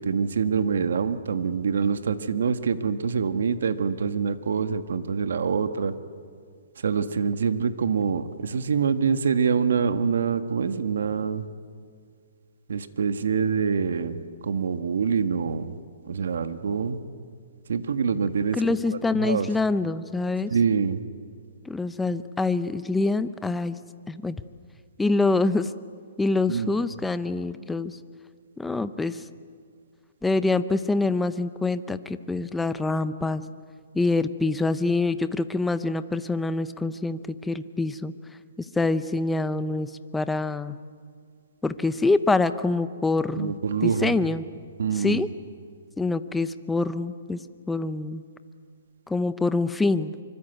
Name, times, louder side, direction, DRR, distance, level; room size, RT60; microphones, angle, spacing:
voice 1, 0.0-5.9 6.8-11.4 12.7-14.2 14.4-15.7 16.0-17.0 17.7-18.6 19.2-19.5 20.5-21.0 26.5-26.7 43.4-44.1 44.8-45.2, right 6 dB, 80° right, 10 dB, 1.6 m, -25 dB
voice 2, 18.5-20.5 21.6-23.8 24.1-24.4 25.0-25.7 26.2-28.0 28.6-29.3 30.2-33.5 33.9-38.1 38.6-40.8 41.6-43.5 43.8-44.4 44.9-45.3 46.0-47.4 47.7-48.2 49.1-50.2, left 3 dB, 5° left, 12 dB, 0.7 m, -25 dB
25.5 x 24.5 x 8.2 m, 2.1 s
hypercardioid pair, 160°, 0 cm